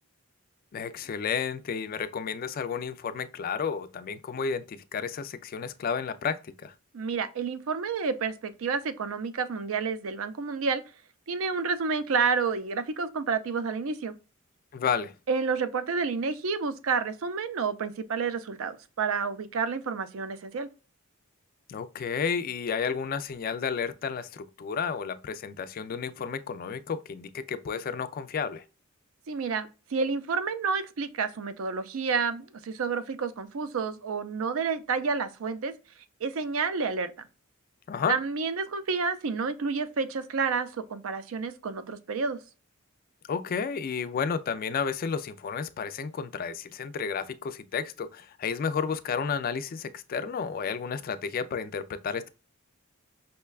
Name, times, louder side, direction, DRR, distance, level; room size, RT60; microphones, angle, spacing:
voice 1, 0.7-6.7 14.7-15.1 21.7-28.6 37.9-38.2 43.3-52.3, left 6 dB, 40° left, 0.3 m, -32 dB
voice 2, 6.9-10.8 11.3-14.1 15.3-20.7 29.3-35.7 36.2-37.1 38.1-42.4, right 5 dB, 70° right, 0.4 m, -29 dB
5.4 x 2.2 x 2.2 m
head